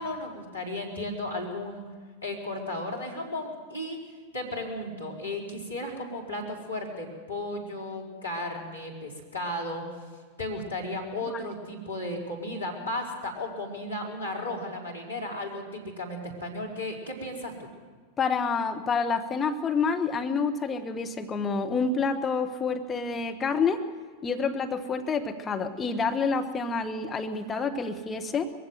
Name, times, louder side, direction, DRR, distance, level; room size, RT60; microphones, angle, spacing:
voice 1, 0.0-1.9 2.2-4.0 4.3-9.8 10.4-17.7, left 1 dB, 80° left, -2 dB, 4.5 m, -34 dB
voice 2, 18.2-23.8 24.2-28.5, left 5 dB, 20° left, 6 dB, 1.2 m, -28 dB
22.0 x 16.0 x 7.7 m, 1.5 s
figure-of-eight pair, 90°, 0 cm